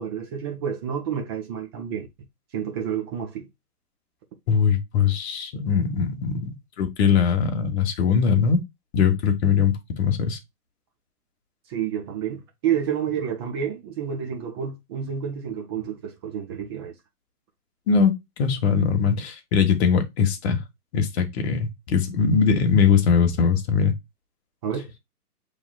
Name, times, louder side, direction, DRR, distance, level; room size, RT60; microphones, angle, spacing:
voice 1, 0.0-2.1 2.5-3.5 11.7-16.9 24.6-24.9, right 8 dB, 15° right, 0.5 m, -29 dB
voice 2, 4.5-8.6 8.9-10.4 17.9-18.1 18.4-20.6 20.9-23.9, left 6 dB, 40° left, 1.3 m, -21 dB
7.0 x 3.3 x 2.2 m
figure-of-eight pair, 125°, 47 cm